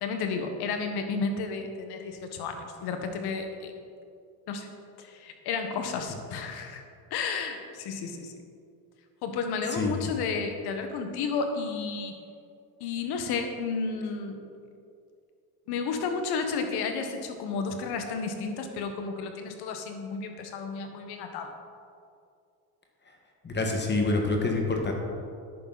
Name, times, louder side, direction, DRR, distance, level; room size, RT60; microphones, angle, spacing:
voice 1, 0.0-3.7 4.5-4.7 5.0-6.8 7.1-8.3 9.2-12.2 12.8-14.4 15.7-21.5, left 5 dB, 65° left, 6 dB, 1.5 m, -32 dB
voice 2, 9.7-10.1 23.4-24.9, left 2 dB, 25° left, 2 dB, 1.6 m, -27 dB
10.5 x 9.2 x 4.1 m, 2.4 s
supercardioid pair, 100°, 41 cm